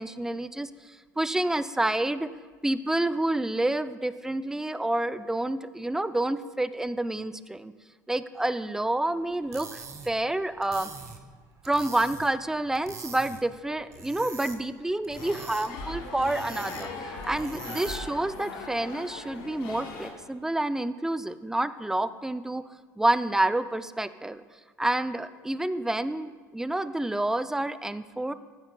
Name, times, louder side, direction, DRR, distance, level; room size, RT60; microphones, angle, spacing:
voice 1, 0.0-2.3 2.6-7.7 8.1-10.9 11.6-22.6 23.0-24.4 24.8-28.3, right 1 dB, 5° right, 13 dB, 0.4 m, -28 dB
sound 1, 9.3-18.2, right 5 dB, 30° right, 1.1 m, -44 dB
sound 2, 15.1-20.1, left 3 dB, 65° left, 2.2 m, -39 dB
14.5 x 9.4 x 2.2 m, 1.5 s
hypercardioid pair, 80°, 10 cm